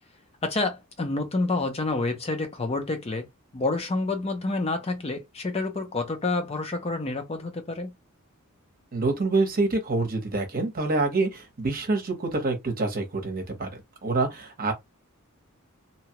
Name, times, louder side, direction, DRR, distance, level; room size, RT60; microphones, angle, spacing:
voice 1, 0.4-3.2 3.5-7.9, left 3 dB, 30° left, 0.5 m, -28 dB
voice 2, 8.9-14.7, right 3 dB, 40° right, 1.0 m, -26 dB
2.8 x 2.3 x 2.9 m
head